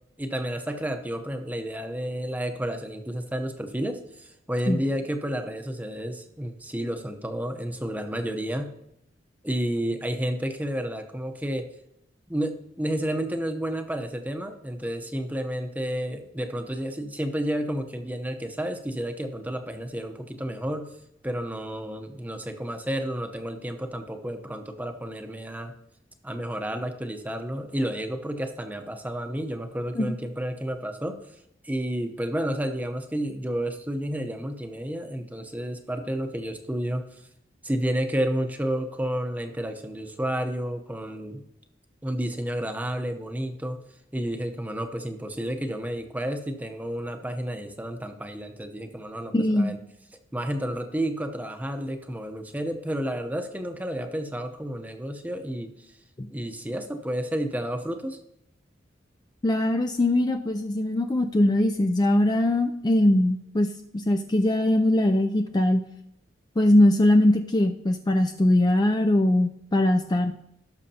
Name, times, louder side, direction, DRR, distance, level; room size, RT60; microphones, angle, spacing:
voice 1, 0.2-8.7 9.4-11.7 12.3-20.9 21.2-25.7 26.2-31.2 31.6-37.2 37.6-41.4 42.0-43.8 44.1-49.8 50.3-55.9 56.3-58.2, right 1 dB, 10° right, 6 dB, 0.8 m, -31 dB
voice 2, 49.3-49.7 56.2-56.3 59.4-63.7 63.9-65.8 66.6-70.3, left 1 dB, 20° left, 5 dB, 0.4 m, -21 dB
17.5 x 6.4 x 2.8 m, 0.78 s
head